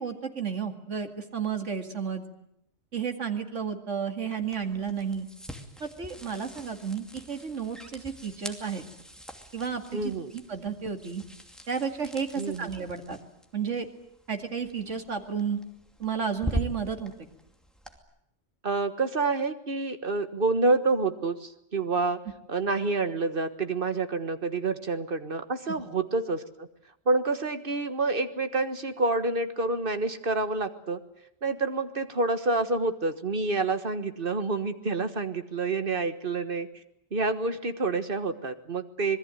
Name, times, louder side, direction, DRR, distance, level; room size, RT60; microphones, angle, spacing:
voice 1, 0.0-2.2 2.9-5.3 5.8-8.9 9.5-11.2 11.7-13.2 13.5-13.9 14.3-15.6 16.0-17.3 25.7-25.8, right 6 dB, 90° right, 5 dB, 2.5 m, -32 dB
sound 1, 4.4-18.0, equal, ahead, 2.6 m, -42 dB
voice 2, 9.9-10.3 12.4-12.7 18.6-22.2 22.5-26.7 27.1-31.0 31.4-36.7 37.1-39.2, right 3 dB, 50° right, 9 dB, 1.6 m, -28 dB
26.0 x 20.5 x 9.1 m, 0.77 s
omnidirectional pair, 1.2 m